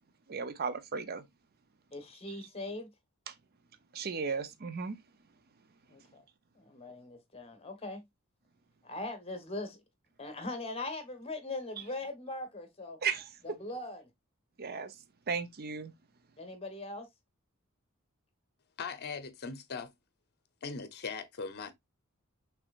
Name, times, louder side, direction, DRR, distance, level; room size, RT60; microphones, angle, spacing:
voice 1, 0.3-1.2 3.3-3.4 3.9-5.0 13.0-13.3 14.6-14.9 15.3-15.9, right 5 dB, 45° right, 0.6 m, -35 dB
voice 2, 1.9-2.9 5.9-6.2 6.6-8.0 8.8-9.8 10.2-13.0 13.6-14.1 16.4-17.1, left 2 dB, 30° left, 1.2 m, -40 dB
voice 3, 18.8-19.9 20.6-21.7, left 5 dB, 50° left, 0.7 m, -39 dB
5.9 x 3.4 x 2.4 m
head